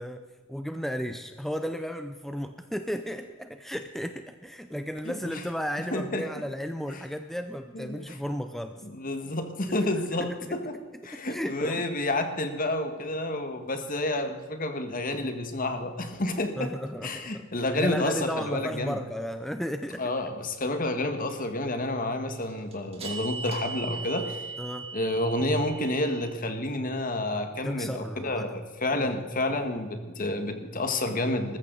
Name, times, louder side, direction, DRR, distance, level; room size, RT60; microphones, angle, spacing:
voice 1, 0.0-8.8 9.7-9.8 10.2-10.6 11.1-11.8 16.6-17.4 17.7-20.0 24.6-25.0 27.6-28.5 29.0-29.1, equal, ahead, 7 dB, 0.6 m, -34 dB
voice 2, 5.0-5.4 5.9-6.3 6.9-7.0 7.7-8.2 8.8-10.8 11.0-16.7 17.0-19.0 20.0-24.5 24.9-31.6, left 1 dB, 45° left, 7 dB, 1.6 m, -30 dB
sound 1, 12.0-12.1 22.4-26.3, right 5 dB, 30° right, 2.9 m, -39 dB
20.0 x 14.5 x 4.0 m, 1.4 s
head